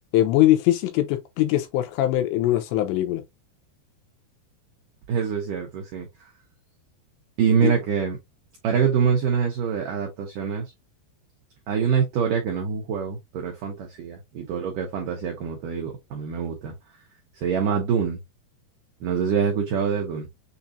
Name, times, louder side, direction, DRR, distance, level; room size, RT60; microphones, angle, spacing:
voice 1, 0.1-3.2 7.6-7.7, left 14 dB, 90° left, 3.0 m, -21 dB
voice 2, 5.1-6.1 7.4-8.2 8.6-10.7 11.7-16.7 17.4-18.2 19.0-20.3, right 7 dB, 85° right, 1.9 m, -25 dB
7.1 x 2.7 x 2.7 m
omnidirectional pair, 5.1 m